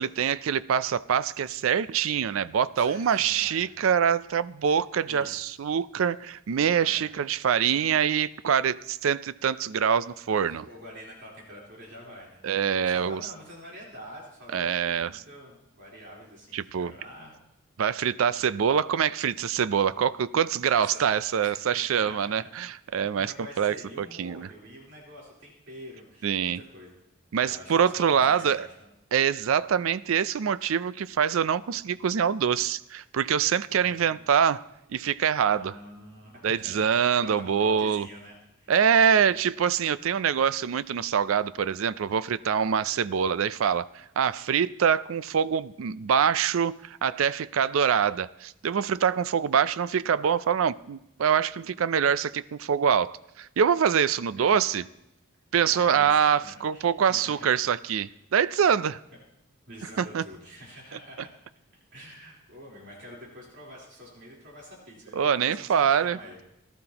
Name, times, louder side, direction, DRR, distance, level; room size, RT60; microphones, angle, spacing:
voice 1, 0.0-10.7 12.4-13.2 14.5-15.2 16.5-16.9 17.8-24.5 26.2-26.6 27.3-28.7 29.1-34.6 34.9-35.8 36.4-38.1 38.7-54.8 55.5-59.0 60.0-60.2 65.1-66.4, right 7 dB, 75° right, 0.4 m, -25 dB
voice 2, 2.8-3.7 4.7-4.8 5.0-5.5 6.8-7.1 10.4-17.4 20.7-22.5 23.0-26.9 27.4-28.9 33.7-34.3 35.5-39.2 54.4-54.6 55.5-57.5 59.7-61.3 61.7-66.4, equal, 55° right, 3.8 m, -46 dB
18.5 x 12.5 x 2.9 m
head